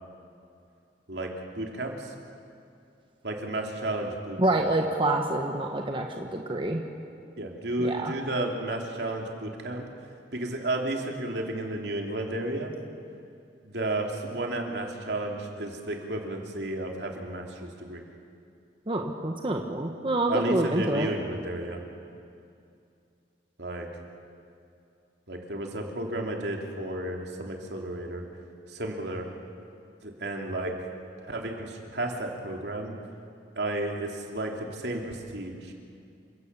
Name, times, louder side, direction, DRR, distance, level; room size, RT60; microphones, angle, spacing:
voice 1, 1.1-2.1 3.2-4.7 7.4-9.8 10.3-12.7 13.6-18.0 20.3-21.8 23.6-23.9 25.3-28.2 28.7-29.3 30.0-30.7 31.2-32.9 33.6-35.7, right 1 dB, 70° right, 1 dB, 3.1 m, -32 dB
voice 2, 4.4-6.8 7.8-8.1 18.9-21.1, right 2 dB, 30° right, 2 dB, 1.3 m, -27 dB
29.0 x 17.0 x 6.9 m, 2.5 s
head